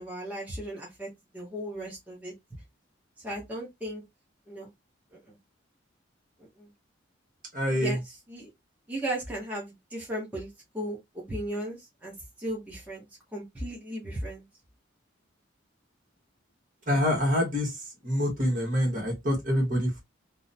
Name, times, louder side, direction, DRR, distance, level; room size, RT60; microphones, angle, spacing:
voice 1, 0.0-2.3 3.2-4.0 4.5-4.7 5.3-5.4 6.4-6.7 7.7-8.0 8.3-8.5 8.9-10.5 10.7-11.0 11.3-12.1 12.4-13.1 13.3-14.4, right 1 dB, 10° right, 0.8 m, -36 dB
voice 2, 7.5-8.0 16.9-17.8 18.0-20.0, equal, 45° right, 1.2 m, -26 dB
2.8 x 2.1 x 2.5 m
head